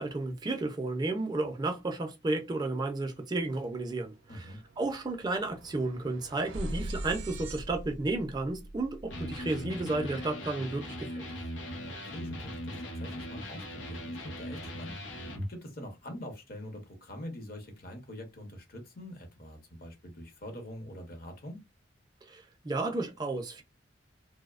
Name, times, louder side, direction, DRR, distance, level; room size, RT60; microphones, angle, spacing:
voice 1, 0.0-11.3 22.2-23.6, right 2 dB, 20° right, 0.3 m, -33 dB
sound 1, 3.4-3.5 3.8-10.1, right 1 dB, 90° right, 0.5 m, -42 dB
voice 2, 4.3-4.6 11.8-21.6, equal, 55° left, 0.7 m, -45 dB
Electric guitar, 9.1-15.5, equal, 90° left, 0.7 m, -39 dB
2.6 x 2.0 x 2.3 m
head